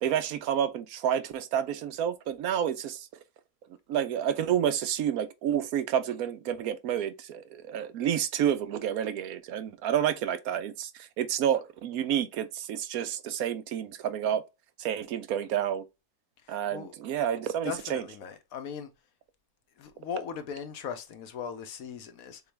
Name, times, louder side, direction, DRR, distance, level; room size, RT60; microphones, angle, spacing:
voice 1, 0.0-3.1 3.9-14.4 14.8-15.8 16.5-18.0, right 9 dB, 75° right, 1.0 m, -29 dB
voice 2, 16.5-16.9 17.6-18.9 19.8-22.4, left 7 dB, 70° left, 1.1 m, -38 dB
6.9 x 2.3 x 3.2 m
omnidirectional pair, 1.6 m